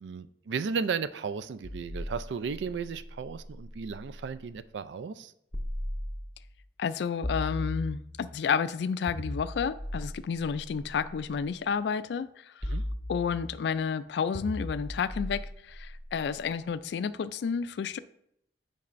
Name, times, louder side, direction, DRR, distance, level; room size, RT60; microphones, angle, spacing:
voice 1, 0.0-5.3 12.7-12.8, right 5 dB, 75° right, 0.4 m, -34 dB
sound 1, 1.6-4.4 5.5-6.6 7.2-8.3 9.1-11.3 12.6-13.7 14.3-16.5, left 1 dB, 10° left, 0.6 m, -38 dB
voice 2, 6.8-12.3 13.1-18.0, left 6 dB, 65° left, 0.3 m, -31 dB
8.6 x 5.3 x 2.5 m
head